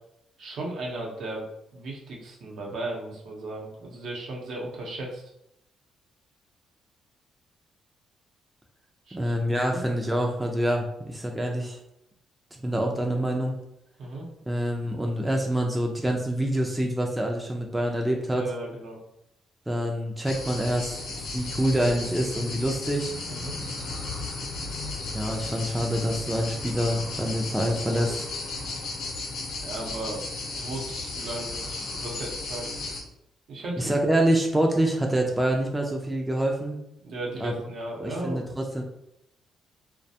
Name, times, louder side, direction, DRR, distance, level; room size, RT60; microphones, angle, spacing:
voice 1, 0.4-1.4 1.7-5.2 9.1-9.3 9.7-9.8 14.0-14.3 18.3-19.0 23.3-23.5 29.6-30.2 30.6-32.7 33.5-33.9 37.0-38.4, right 2 dB, 65° right, -2 dB, 0.7 m, -36 dB
voice 2, 9.1-11.8 12.6-13.6 14.5-18.4 19.7-23.1 25.1-28.3 33.8-36.8 37.4-37.5 38.0-38.8, right 1 dB, 10° right, 1 dB, 0.4 m, -26 dB
sound 1, 20.2-33.0, left 3 dB, 65° left, 0.6 m, -34 dB
2.3 x 2.2 x 2.7 m, 0.80 s
cardioid pair, 90°, 0 cm